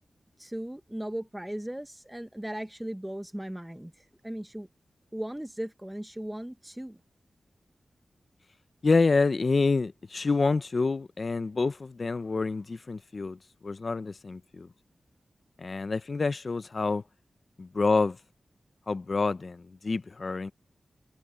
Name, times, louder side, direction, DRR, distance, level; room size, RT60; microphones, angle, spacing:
voice 1, 0.4-4.7 5.1-7.0, right 1 dB, 10° right, 0.7 m, -37 dB
voice 2, 8.8-14.7 15.6-17.0 17.6-18.2 18.9-20.5, left 3 dB, 45° left, 0.7 m, -27 dB
wide cardioid pair, 110°, 0 cm